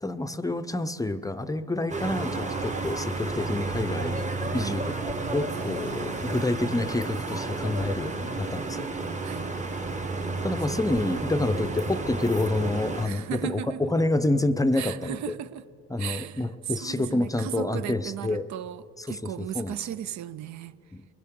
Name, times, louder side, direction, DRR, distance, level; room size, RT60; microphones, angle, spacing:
voice 1, 0.0-4.2 4.5-8.9 10.4-15.4 15.9-18.5 19.0-19.8 20.9-21.1, left 2 dB, 10° left, 0.5 m, -28 dB
sound 1, 1.9-13.1, right 3 dB, 25° right, 1.0 m, -32 dB
voice 2, 5.5-6.3 9.2-9.5 13.0-13.9 14.8-15.6 16.0-16.4 16.8-20.8, right 10 dB, 70° right, 0.5 m, -36 dB
sound 2, 15.2-15.9 16.2-16.4 18.1-18.2, right 12 dB, 90° right, 0.9 m, -48 dB
22.5 x 16.0 x 3.7 m
cardioid pair, 90°, 30 cm